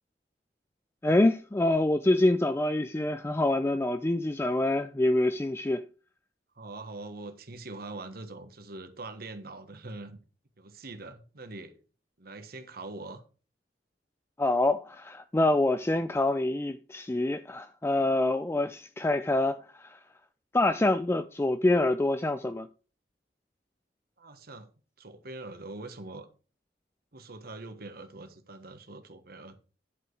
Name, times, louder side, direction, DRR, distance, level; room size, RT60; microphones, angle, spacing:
voice 1, 1.0-5.8 14.4-20.0 20.5-22.7, left 2 dB, 15° left, 0.4 m, -26 dB
voice 2, 6.5-10.2 10.6-11.8 12.2-13.2 24.2-24.7 25.0-26.3 27.1-29.6, right 2 dB, 60° right, 1.4 m, -43 dB
10.5 x 4.9 x 4.7 m
head